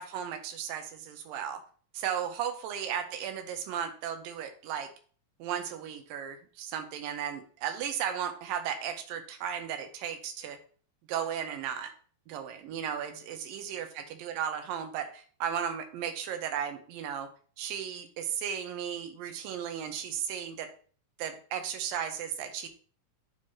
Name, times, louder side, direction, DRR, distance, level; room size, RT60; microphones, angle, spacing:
voice 1, 0.0-1.6 1.9-4.9 5.4-10.6 11.1-11.9 12.3-13.9 14.1-17.3 17.6-20.7 21.2-22.7, right 8 dB, 90° right, 7 dB, 2.5 m, -35 dB
9.4 x 4.5 x 2.9 m, 0.43 s
omnidirectional pair, 3.9 m